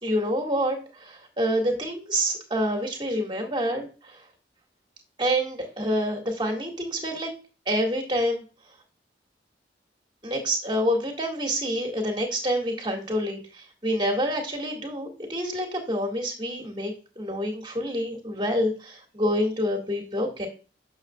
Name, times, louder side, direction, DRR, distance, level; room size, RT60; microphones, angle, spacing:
voice 1, 0.0-4.2 5.2-7.3 7.7-8.4 10.2-20.5, equal, 25° right, 1 dB, 1.9 m, -27 dB
9.5 x 6.7 x 2.3 m, 0.35 s
head